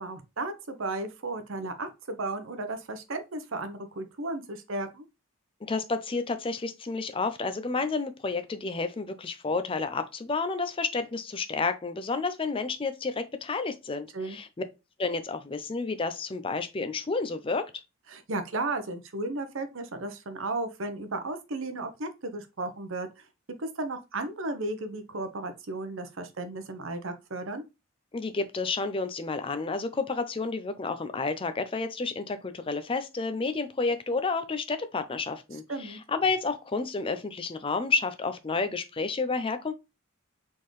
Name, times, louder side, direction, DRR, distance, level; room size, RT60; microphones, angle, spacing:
voice 1, 0.0-5.0 14.1-14.4 18.1-23.1 23.6-27.6 35.7-36.0, right 2 dB, 65° right, 0.8 m, -34 dB
voice 2, 5.6-14.5 15.0-17.7 28.1-39.7, left 4 dB, 25° left, 0.5 m, -30 dB
4.4 x 3.7 x 3.1 m
head